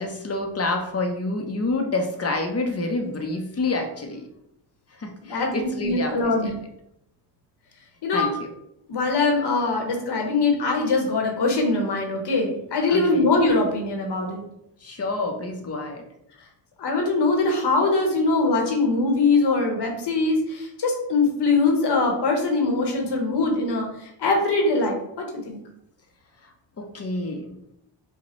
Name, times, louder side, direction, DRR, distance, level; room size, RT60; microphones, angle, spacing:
voice 1, 0.0-4.3 4.9-6.5 8.1-8.3 12.9-13.3 14.8-16.0 26.4-27.6, left 2 dB, 35° left, 4 dB, 0.8 m, -28 dB
voice 2, 5.3-6.6 8.0-8.3 8.9-14.5 16.8-25.6, left 3 dB, 65° left, 1 dB, 1.2 m, -22 dB
5.1 x 2.3 x 3.1 m, 0.79 s
cardioid pair, 85°, 44 cm